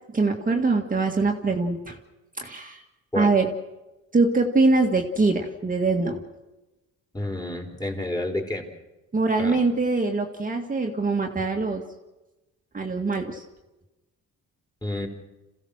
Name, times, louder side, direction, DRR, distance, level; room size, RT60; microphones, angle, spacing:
voice 1, 0.1-2.0 2.4-2.8 3.1-3.5 4.1-6.2 9.1-11.8 12.7-13.4, right 3 dB, 25° right, 2 dB, 1.9 m, -23 dB
voice 2, 7.1-8.6 9.4-9.6 14.8-15.1, left 1 dB, 15° left, 2 dB, 4.2 m, -29 dB
27.5 x 15.5 x 6.6 m, 1.1 s
cardioid pair, 90°, 30 cm